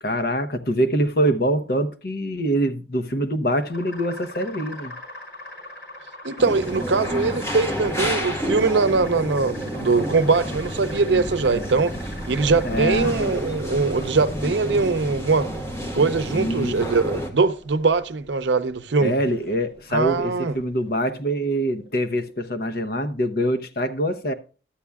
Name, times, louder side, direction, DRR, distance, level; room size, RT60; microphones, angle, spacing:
voice 1, 0.0-4.9 12.6-13.2 16.3-16.8 19.0-24.3, equal, 55° left, 0.8 m, -24 dB
sound 1, 3.7-22.4, equal, 75° left, 5.7 m, -41 dB
voice 2, 6.2-11.9 12.3-15.6 15.9-19.1 19.9-20.5, right 4 dB, 90° right, 0.6 m, -22 dB
sound 2, 6.4-17.3, equal, 15° left, 1.2 m, -30 dB
13.0 x 8.3 x 2.3 m
head